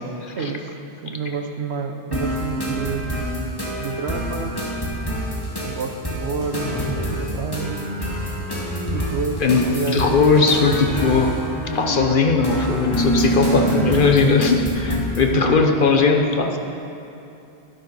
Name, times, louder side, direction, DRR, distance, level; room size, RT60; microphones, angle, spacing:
voice 1, 0.4-0.7 1.0-3.1 3.8-4.6 5.5-7.8 8.9-10.2 15.3-15.5, right 5 dB, 75° right, 6 dB, 1.1 m, -29 dB
sound 1, 2.1-15.2, equal, 20° left, 2.2 m, -26 dB
voice 2, 9.9-11.3 11.7-16.6, left 4 dB, 50° left, 4 dB, 1.0 m, -18 dB
12.0 x 11.5 x 5.4 m, 2.9 s
omnidirectional pair, 1.1 m